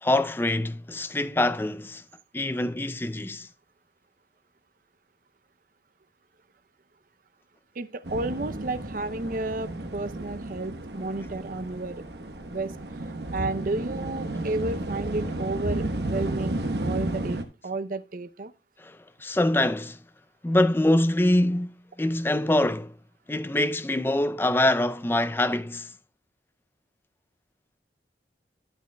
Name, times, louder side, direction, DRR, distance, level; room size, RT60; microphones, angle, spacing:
voice 1, 0.0-2.0 2.3-3.5 18.8-20.0 20.4-23.0 23.3-25.9, left 1 dB, 10° left, 0.4 m, -24 dB
voice 2, 7.8-12.0 12.5-12.8 13.3-18.5, right 2 dB, 50° right, 0.6 m, -32 dB
sound 1, 8.0-17.4, right 1 dB, 65° right, 1.1 m, -32 dB
12.5 x 8.9 x 2.2 m
head